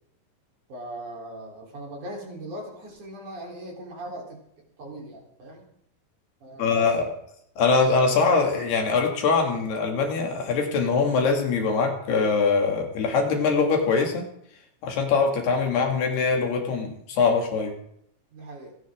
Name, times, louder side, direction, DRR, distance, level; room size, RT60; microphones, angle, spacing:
voice 1, 0.7-4.4 4.8-5.6 6.4-6.9 18.3-18.8, right 1 dB, 50° right, -1 dB, 5.0 m, -39 dB
voice 2, 6.6-7.1 7.6-14.3 14.8-17.7, left 4 dB, 70° left, 2 dB, 4.4 m, -23 dB
27.5 x 10.5 x 3.7 m, 0.71 s
omnidirectional pair, 4.8 m